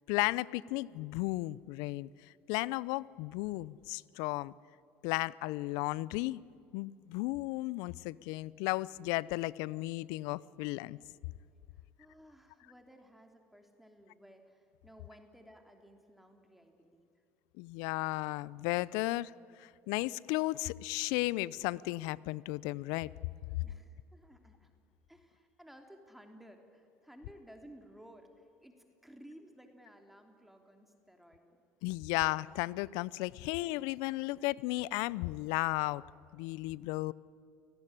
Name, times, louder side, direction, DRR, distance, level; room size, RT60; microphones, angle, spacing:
voice 1, 0.1-4.5 5.0-6.4 6.7-11.0 17.6-19.3 19.6-23.1 31.8-36.0 36.3-37.1, left 20 dB, 70° left, 22 dB, 0.6 m, -34 dB
voice 2, 11.7-17.2 23.6-24.7 25.1-31.6, equal, 5° right, 4 dB, 3.1 m, -57 dB
29.0 x 19.0 x 9.9 m, 2.4 s
hypercardioid pair, 70°, 7 cm